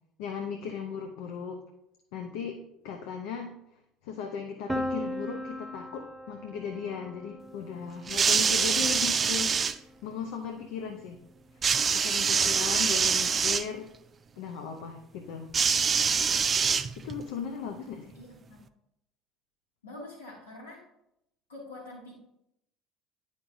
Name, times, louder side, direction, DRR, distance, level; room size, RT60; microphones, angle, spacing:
voice 1, 0.2-1.6 2.1-3.5 4.0-9.6 10.0-11.2 11.9-13.9 14.4-15.5 17.0-18.1, left 6 dB, 65° left, 4 dB, 0.6 m, -37 dB
Piano, 4.7-10.5, left 1 dB, ahead, 0.7 m, -39 dB
sound 1, 8.1-9.8 11.6-13.7 15.5-17.2 18.2-18.3, right 6 dB, 35° right, 0.4 m, -25 dB
voice 2, 18.1-18.7 19.8-20.8 21.5-22.2, left 2 dB, 80° left, -4 dB, 2.2 m, -45 dB
10.0 x 5.1 x 2.6 m, 0.83 s
figure-of-eight pair, 60°, 0 cm